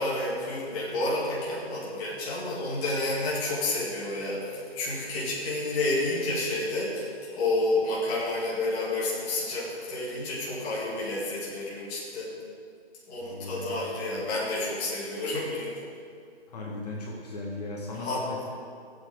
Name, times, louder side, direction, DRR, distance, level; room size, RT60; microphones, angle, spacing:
voice 1, 0.0-12.3 13.1-15.8 18.0-18.2, left 2 dB, 15° left, -6 dB, 2.0 m, -30 dB
voice 2, 13.2-14.2 16.5-18.5, left 2 dB, 40° left, -3 dB, 1.8 m, -37 dB
16.0 x 7.9 x 4.9 m, 2.3 s
hypercardioid pair, 155°, 32 cm